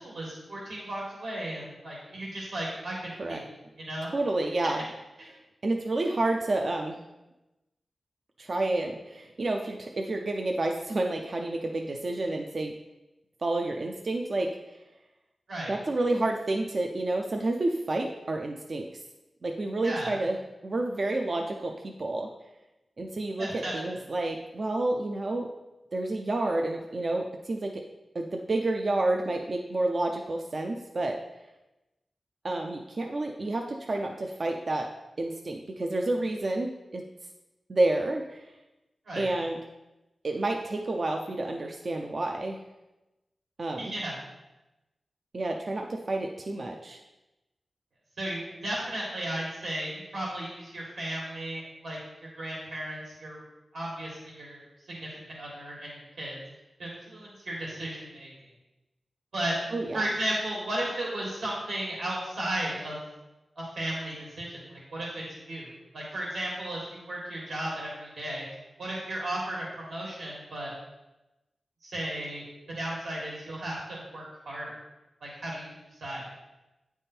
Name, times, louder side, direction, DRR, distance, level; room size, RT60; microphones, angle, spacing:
voice 1, 0.0-3.4 3.8-4.1 15.5-15.8 19.8-20.1 23.4-23.7 39.1-39.3 43.8-44.2 48.2-53.4 53.7-56.4 56.8-58.3 59.3-59.6 59.9-63.0 63.6-68.4 68.8-70.7 71.8-72.4 72.7-74.7 75.2-75.7 76.0-76.3, right 1 dB, 75° right, -4 dB, 1.7 m, -35 dB
voice 2, 4.0-4.8 5.3-7.0 8.4-12.7 13.4-14.8 15.7-18.9 19.4-22.3 23.0-25.5 25.9-27.8 28.1-31.2 32.4-34.9 35.2-37.0 37.7-38.5 39.2-39.6 40.2-42.6 43.6-43.9 45.3-47.0 59.7-60.0, right 2 dB, 45° right, 2 dB, 0.4 m, -29 dB
9.1 x 3.5 x 4.3 m, 1.0 s
wide cardioid pair, 110°, 0 cm